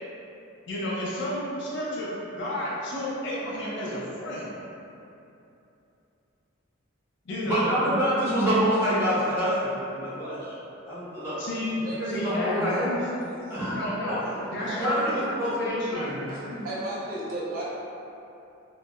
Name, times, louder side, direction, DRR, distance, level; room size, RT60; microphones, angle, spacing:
voice 1, 0.7-4.5 7.3-7.7 11.4-13.0 13.7-14.2 14.5-16.6, left 1 dB, 55° left, -6 dB, 0.4 m, -31 dB
voice 2, 7.4-10.6 10.8-11.4 11.8-12.8 13.5-16.1, equal, 10° right, -13 dB, 0.7 m, -27 dB
voice 3, 11.8-12.9 13.2-13.8 14.1-14.2 14.6-14.9 16.3-17.6, equal, 40° right, -8 dB, 0.4 m, -34 dB
2.7 x 2.0 x 2.2 m, 2.8 s
head